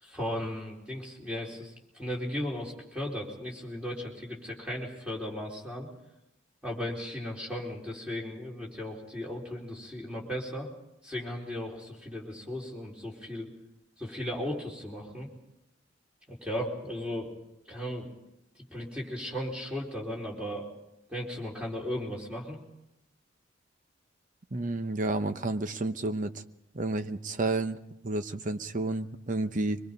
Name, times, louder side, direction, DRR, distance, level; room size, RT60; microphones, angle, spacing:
voice 1, 0.0-5.9 6.6-10.7 11.0-13.5 14.0-15.3 16.3-17.3 17.7-18.1 18.6-20.7 21.1-22.6, left 1 dB, 5° right, -3 dB, 4.4 m, -36 dB
voice 2, 24.5-26.3 26.7-29.8, right 2 dB, 40° right, 9 dB, 0.9 m, -31 dB
24.5 x 22.0 x 5.4 m, 0.88 s
head